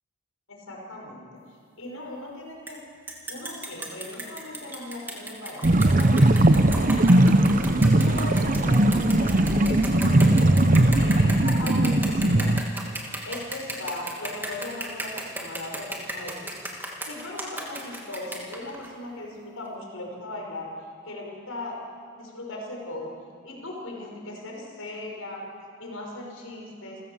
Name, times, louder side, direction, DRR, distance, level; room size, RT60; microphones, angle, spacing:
voice 1, 0.5-1.3 1.8-2.8 3.3-7.6 7.9-12.5 13.3-16.5 17.0-20.7 21.0-21.8 22.1-23.1 23.4-25.4 25.8-27.0, left 2 dB, 80° left, -1 dB, 5.8 m, -38 dB
sound 1, 2.7-2.8 3.1-18.9, right 2 dB, 10° right, 2.4 m, -35 dB
sound 2, 5.6-12.6, right 1 dB, 40° right, 0.8 m, -19 dB
28.5 x 15.0 x 7.4 m, 2.4 s
head